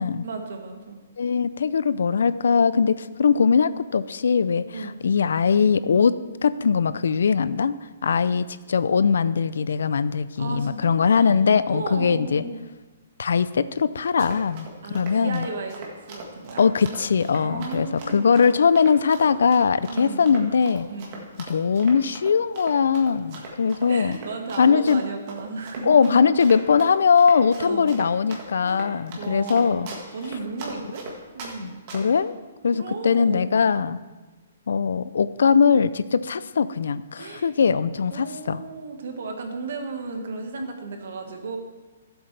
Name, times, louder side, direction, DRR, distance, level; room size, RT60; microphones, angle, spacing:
voice 1, 0.2-1.0 4.7-5.0 8.0-8.2 10.3-11.3 11.6-12.6 14.8-16.6 17.4-18.4 19.9-20.4 20.8-21.3 23.3-23.5 23.8-26.2 27.5-28.0 28.6-29.9 30.1-31.1 31.3-31.8 32.7-33.6 37.1-37.5 38.1-41.6, right 3 dB, 55° right, 4 dB, 1.5 m, -35 dB
voice 2, 1.2-6.1 6.4-7.8 8.0-12.4 13.2-15.5 16.6-20.9 21.5-24.2 24.6-25.0 25.8-29.9 31.6-32.4 32.6-34.0 34.7-38.6 40.6-40.7, left 6 dB, 75° left, 16 dB, 0.4 m, -21 dB
Run, 14.0-31.5 31.9-32.2, right 3 dB, 30° right, 1.6 m, -40 dB
14.0 x 7.9 x 3.3 m, 1.2 s
hypercardioid pair, 175°, 0 cm